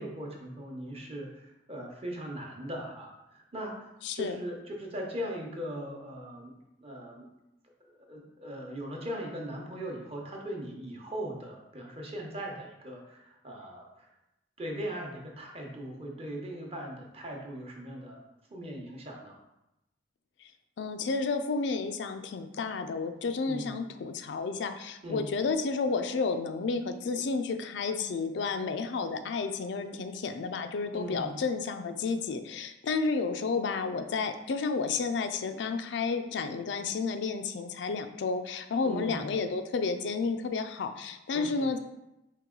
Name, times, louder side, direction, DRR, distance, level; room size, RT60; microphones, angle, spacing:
voice 1, 0.0-6.5 6.8-7.3 7.8-14.1 14.6-18.2 18.5-19.4 23.4-23.8 25.0-25.2 30.9-31.4 38.8-39.3 41.3-41.7, equal, 35° right, 0 dB, 0.9 m, -39 dB
voice 2, 4.0-4.4 20.8-41.8, left 4 dB, 80° left, 8 dB, 0.4 m, -31 dB
4.6 x 3.0 x 3.8 m, 0.92 s
head